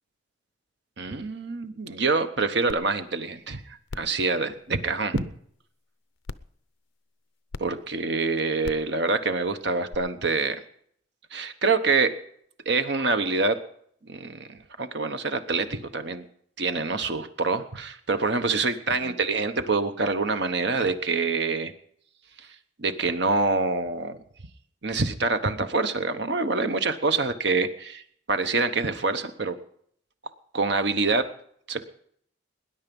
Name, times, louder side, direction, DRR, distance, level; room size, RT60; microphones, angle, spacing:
voice 1, 1.0-3.6 3.9-5.2 7.6-10.6 11.3-12.2 12.7-13.6 14.0-16.2 16.6-21.7 22.4-22.5 22.8-24.2 24.8-28.0 28.3-29.6 30.5-31.3 31.7-31.9, right 3 dB, 55° right, 9 dB, 1.0 m, -26 dB
sound 1, 2.7-2.8 3.3-3.4 3.9-4.1 5.1-5.2 6.2-6.5 7.5-7.6 8.6-8.9 9.9-10.0, left 3 dB, 75° left, 0.6 m, -36 dB
19.5 x 10.5 x 5.3 m, 0.65 s
head